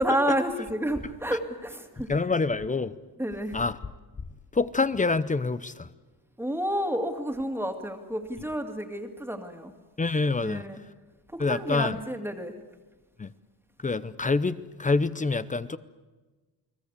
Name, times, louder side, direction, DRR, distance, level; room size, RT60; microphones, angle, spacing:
voice 1, 0.0-2.1 3.2-3.6 6.4-9.7 10.4-10.8 11.3-12.5, right 1 dB, 5° right, 2.4 m, -30 dB
voice 2, 2.0-2.9 3.5-3.8 4.5-5.9 10.0-10.6 11.4-12.0 13.2-13.3 13.8-15.8, left 3 dB, 20° left, 0.7 m, -26 dB
29.5 x 20.0 x 8.4 m
cardioid pair, 130°, 41 cm